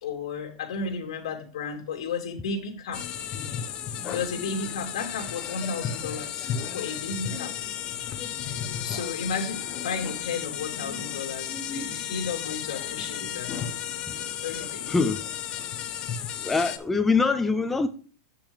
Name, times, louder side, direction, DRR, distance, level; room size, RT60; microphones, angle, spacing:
voice 1, 0.0-3.2 4.1-7.5 8.8-13.5 14.4-14.9, left 5 dB, 75° left, 2.9 m, -33 dB
sound 1, 2.9-16.8, left 9 dB, 30° left, 0.9 m, -34 dB
voice 2, 14.9-15.2 16.4-17.9, left 4 dB, 5° left, 0.4 m, -23 dB
8.3 x 6.8 x 3.2 m
supercardioid pair, 155°, 3 cm